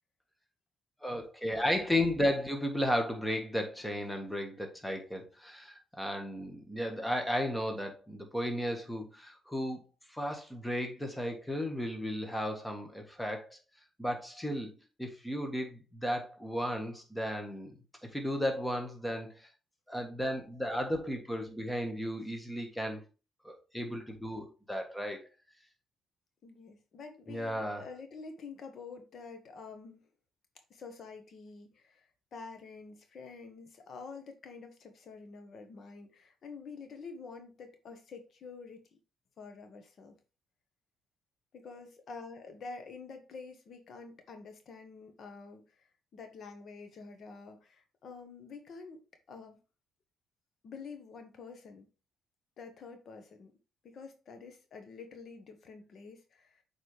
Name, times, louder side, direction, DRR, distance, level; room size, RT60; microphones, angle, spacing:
voice 1, 1.0-9.8 10.1-13.6 14.0-14.7 15.0-17.7 18.0-19.5 19.9-23.0 23.4-25.2 27.3-27.9, equal, 5° left, 1.5 m, -34 dB
voice 2, 26.4-30.1 30.7-38.8 39.4-40.2 41.5-49.6 50.6-51.9 52.6-53.5 53.8-56.6, left 4 dB, 60° left, 1.3 m, -48 dB
8.0 x 4.2 x 3.3 m
cardioid pair, 90°, 0 cm